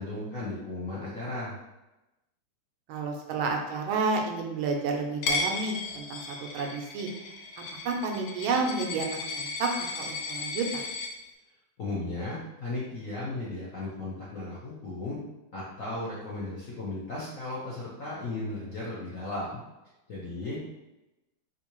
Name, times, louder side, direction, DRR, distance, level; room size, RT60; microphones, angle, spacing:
voice 1, 0.0-1.6 11.8-15.2 15.5-19.6 20.1-20.6, left 2 dB, 65° left, -7 dB, 0.8 m, -35 dB
voice 2, 2.9-7.1 7.8-10.8, right 4 dB, 85° right, 2 dB, 1.4 m, -30 dB
Coin (dropping), 5.2-11.1, left 4 dB, 85° left, 1.4 m, -35 dB
3.6 x 2.6 x 2.9 m, 0.98 s
omnidirectional pair, 2.2 m